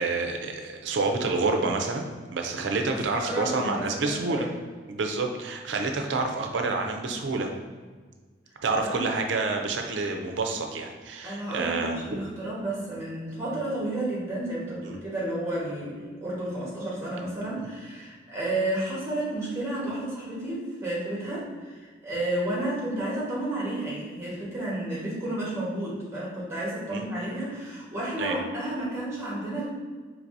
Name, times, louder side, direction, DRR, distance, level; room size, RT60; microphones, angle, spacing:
voice 1, 0.0-2.0 2.3-4.5 4.9-7.5 8.6-12.2 14.8-15.0 26.9-27.0 28.2-28.4, right 3 dB, 75° right, 3 dB, 0.5 m, -28 dB
voice 2, 3.1-4.5 8.7-9.1 11.2-29.7, right 1 dB, 15° right, -6 dB, 1.3 m, -31 dB
4.6 x 3.2 x 2.6 m, 1.5 s
head